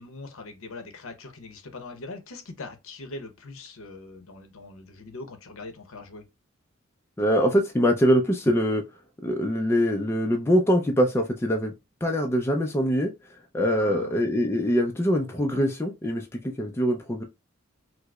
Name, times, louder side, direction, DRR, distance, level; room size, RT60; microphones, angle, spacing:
voice 1, 0.0-6.2 13.7-14.1, left 3 dB, 65° left, 0.7 m, -41 dB
voice 2, 7.2-8.8 9.2-11.7 12.0-17.2, equal, 10° left, 0.3 m, -23 dB
4.6 x 2.0 x 2.2 m
head